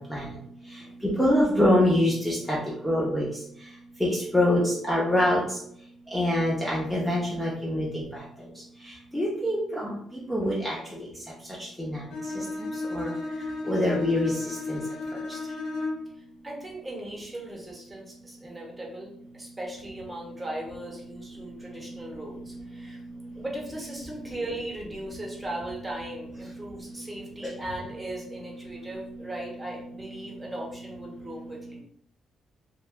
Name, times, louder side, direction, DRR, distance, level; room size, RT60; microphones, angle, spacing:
voice 1, 1.2-2.6 2.8-3.3 4.0-5.4 6.1-8.0 9.1-10.0 10.3-10.8 11.8-12.0 12.9-13.1 13.7-14.3 14.7-14.8, left 1 dB, 5° left, -6 dB, 0.7 m, -24 dB
Bowed string instrument, 12.1-16.2, left 2 dB, 80° left, 0.6 m, -33 dB
voice 2, 16.4-23.0 23.3-31.8, right 1 dB, 15° right, -2 dB, 0.9 m, -38 dB
3.1 x 2.3 x 2.2 m, 0.67 s
cardioid pair, 90°, 0 cm